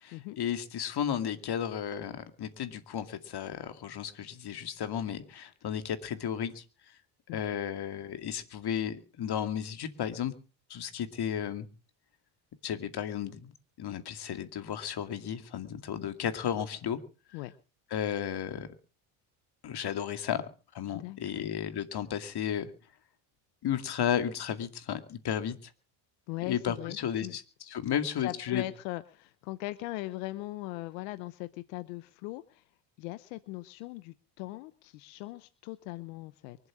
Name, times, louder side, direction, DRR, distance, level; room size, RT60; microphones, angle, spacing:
voice 1, 0.0-6.6 7.3-10.3 10.7-11.7 12.6-17.0 17.9-18.7 19.6-20.5 20.7-22.7 23.6-25.5 26.4-28.6, left 9 dB, 50° left, 8 dB, 2.4 m, -33 dB
voice 2, 20.9-21.5 26.3-27.0 27.2-27.3 28.2-32.6 33.0-36.6, left 19 dB, 90° left, 14 dB, 0.9 m, -39 dB
24.0 x 8.1 x 6.1 m, 0.37 s
supercardioid pair, 85°, 48 cm